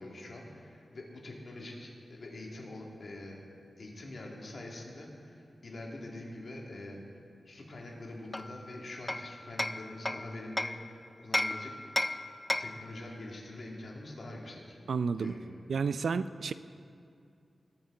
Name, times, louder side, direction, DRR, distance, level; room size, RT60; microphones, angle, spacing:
voice 1, 0.0-3.4 3.8-7.0 7.5-11.7 12.6-14.8 15.2-15.4, left 1 dB, 60° left, -2 dB, 2.4 m, -44 dB
Hammer, 8.3-10.8 11.3-12.9, left 1 dB, 15° left, 0.3 m, -34 dB
voice 2, 14.9-15.3 15.7-16.5, right 5 dB, 80° right, 14 dB, 0.3 m, -31 dB
21.0 x 8.8 x 3.9 m, 2.5 s
wide cardioid pair, 105°, 0 cm